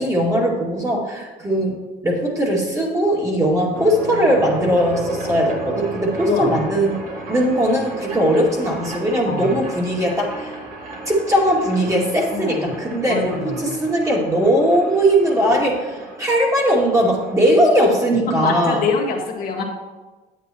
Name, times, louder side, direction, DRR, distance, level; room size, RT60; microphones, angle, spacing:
voice 1, 0.0-10.6 11.1-18.8, equal, 20° right, -3 dB, 2.3 m, -19 dB
sound 1, 3.7-18.7, right 2 dB, 50° right, 2.1 m, -34 dB
voice 2, 12.3-12.7 13.1-13.8 18.4-19.6, left 4 dB, 60° left, 0 dB, 1.6 m, -24 dB
9.1 x 8.7 x 3.0 m, 1.3 s
cardioid pair, 110°, 17 cm